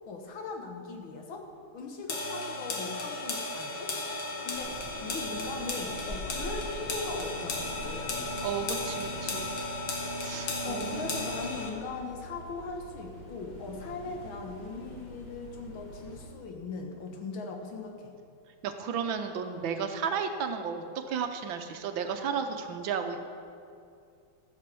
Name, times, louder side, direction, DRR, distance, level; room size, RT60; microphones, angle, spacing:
voice 1, 0.1-1.5 1.7-3.9 4.4-4.7 5.0-8.3 10.6-18.1, left 4 dB, 80° left, 3 dB, 2.1 m, -39 dB
sound 1, 2.1-11.7, left 2 dB, 65° left, 2.1 m, -35 dB
sound 2, 4.5-16.3, equal, 25° left, 1.7 m, -45 dB
voice 2, 8.4-9.6 10.2-11.2 18.6-23.2, right 6 dB, 75° right, 7 dB, 1.6 m, -33 dB
14.5 x 6.5 x 6.9 m, 2.4 s
omnidirectional pair, 2.2 m